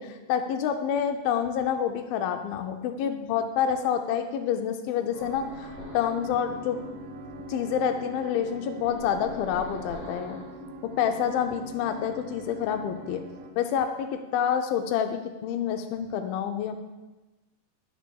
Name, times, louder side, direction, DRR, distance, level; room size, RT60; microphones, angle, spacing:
voice 1, 0.0-6.8 7.5-10.4 10.8-13.2 13.6-16.7, left 8 dB, 85° left, 6 dB, 2.0 m, -28 dB
sound 1, 5.1-13.5, right 1 dB, 80° right, 2.1 m, -42 dB
sound 2, 5.2-6.3 8.8-10.6, left 2 dB, 65° left, 2.9 m, -43 dB
13.0 x 5.6 x 2.3 m, 1.1 s
omnidirectional pair, 4.7 m